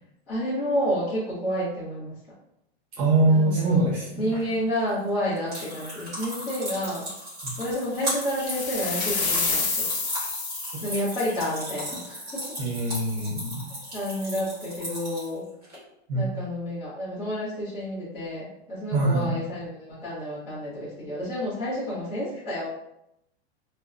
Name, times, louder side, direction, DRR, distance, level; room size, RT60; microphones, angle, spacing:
voice 1, 0.3-2.1 3.3-3.9 4.2-7.1 7.6-9.9 10.8-12.4 13.9-15.4 16.1-22.7, equal, 20° left, -13 dB, 0.7 m, -30 dB
voice 2, 2.9-4.3 7.4-7.5 12.6-13.6 16.1-16.2 18.9-19.3, right 2 dB, 30° right, -5 dB, 0.9 m, -23 dB
sound 1, 4.1-15.8, equal, 10° right, 0.4 m, -36 dB
sound 2, 8.2-11.2, left 4 dB, 75° left, 0.8 m, -28 dB
2.7 x 2.1 x 2.4 m, 0.82 s
supercardioid pair, 180°, 33 cm